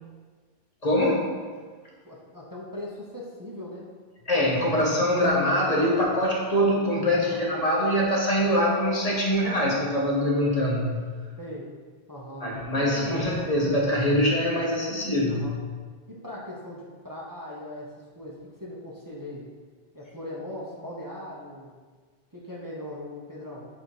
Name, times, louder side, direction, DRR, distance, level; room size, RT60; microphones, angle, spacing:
voice 1, 0.8-1.4 4.3-11.0 12.4-15.5, equal, 40° left, -3 dB, 1.0 m, -23 dB
voice 2, 2.0-3.9 7.1-7.5 11.4-11.7 12.1-13.4 15.3-15.6 16.1-19.5 19.9-21.7 22.3-23.7, left 1 dB, 20° right, -5 dB, 0.8 m, -39 dB
7.9 x 2.8 x 4.7 m, 1.5 s
omnidirectional pair, 1.0 m